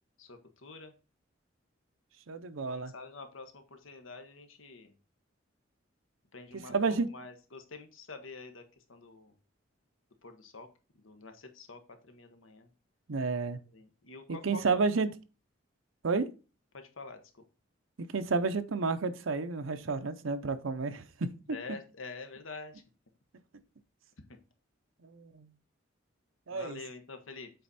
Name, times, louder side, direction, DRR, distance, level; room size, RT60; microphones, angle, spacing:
voice 1, 0.2-0.9 2.6-4.9 6.3-8.6 8.9-9.4 10.2-10.7 10.9-12.7 13.7-14.8 16.7-17.4 21.5-22.8 26.5-27.5, left 3 dB, 90° left, 1.3 m, -47 dB
voice 2, 2.3-2.9 6.7-7.1 13.1-13.6 14.4-15.1 16.0-16.3 18.1-21.3 25.0-25.5 26.5-26.8, right 4 dB, 85° right, 0.7 m, -31 dB
7.8 x 4.2 x 4.1 m
head